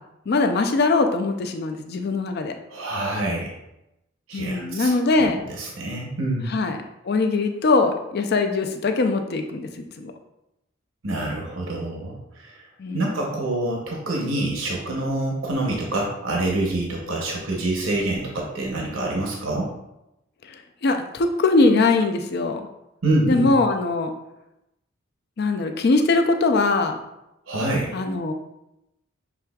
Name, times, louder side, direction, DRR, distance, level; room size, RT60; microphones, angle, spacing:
voice 1, 0.3-2.5 4.3-5.4 6.5-6.8 7.0-9.7 10.0-10.1 12.8-13.2 20.5-22.6 23.3-24.1 25.4-27.0 27.9-28.3, left 3 dB, 50° left, 6 dB, 0.4 m, -21 dB
voice 2, 2.7-3.5 4.3-6.5 11.0-12.6 12.9-19.7 23.0-23.5 27.5-27.9, right 2 dB, 75° right, -1 dB, 0.9 m, -26 dB
6.1 x 3.3 x 2.3 m, 0.88 s
head